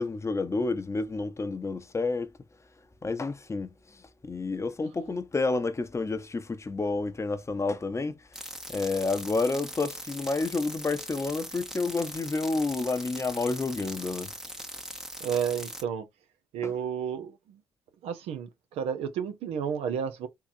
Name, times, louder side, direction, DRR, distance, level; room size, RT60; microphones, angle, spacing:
voice 1, 0.0-2.3 3.0-8.2 8.7-14.3 16.6-16.7, left 3 dB, 30° left, 0.7 m, -30 dB
sound 1, 8.3-15.8, equal, 5° right, 0.7 m, -41 dB
voice 2, 15.2-16.1 16.5-17.6 18.0-20.3, right 7 dB, 80° right, 0.7 m, -31 dB
3.8 x 2.8 x 2.6 m
supercardioid pair, 55°, 10 cm